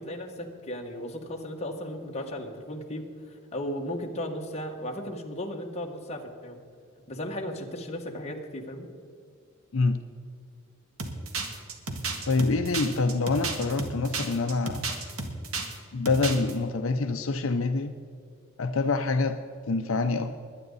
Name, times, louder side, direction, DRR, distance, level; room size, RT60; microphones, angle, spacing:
voice 1, 0.0-6.6 7.1-8.9, left 1 dB, 30° left, 1 dB, 1.7 m, -36 dB
sound 1, 11.0-15.8 16.0-16.5, right 3 dB, 90° right, 1.8 m, -33 dB
voice 2, 12.3-14.9 15.9-17.9 18.6-19.4 19.7-20.3, left 3 dB, 70° left, 7 dB, 0.6 m, -26 dB
21.5 x 9.8 x 4.1 m, 2.4 s
head